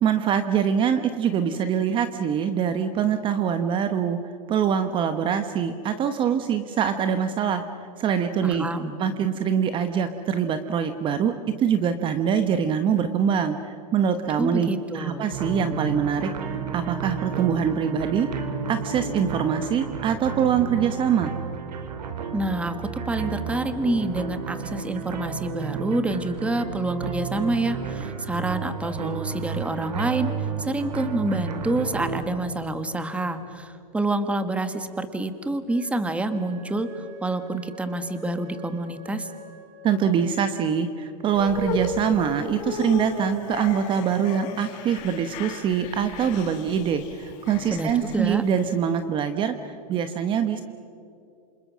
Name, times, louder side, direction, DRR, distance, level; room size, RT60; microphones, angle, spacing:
voice 1, 0.0-4.2 4.5-7.7 8.0-8.7 9.0-14.7 14.9-18.3 18.7-21.3 39.8-50.6, right 8 dB, 25° right, 9 dB, 1.0 m, -24 dB
voice 2, 8.4-9.0 14.4-15.3 22.3-30.3 30.6-39.3 47.7-48.4, right 2 dB, 5° right, 10 dB, 1.3 m, -27 dB
sound 1, 15.3-32.2, right 6 dB, 85° right, 2.9 m, -32 dB
Wind instrument woodwind instrument, 35.6-40.3, left 1 dB, 40° right, 4.1 m, -45 dB
sound 2, 41.3-48.7, left 4 dB, 55° left, 4.0 m, -35 dB
28.0 x 27.0 x 6.2 m, 2.5 s
supercardioid pair, 145°, 20 cm